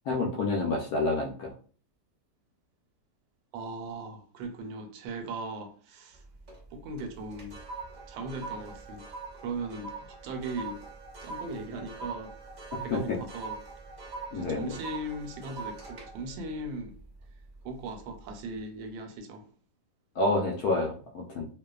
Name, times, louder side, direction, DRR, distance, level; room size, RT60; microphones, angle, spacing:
voice 1, 0.1-1.5 12.9-13.2 14.3-14.7 20.2-21.5, left 2 dB, 70° left, 0.9 m, -28 dB
voice 2, 3.5-6.2 6.7-7.6 8.1-10.8 11.2-12.3 12.8-13.6 14.3-16.9 17.6-19.5, right 2 dB, 85° right, 1.3 m, -38 dB
sound 1, 6.1-6.7 7.0-17.5 18.0-18.3, right 4 dB, 60° right, 0.5 m, -43 dB
2.9 x 2.1 x 2.2 m
omnidirectional pair, 2.0 m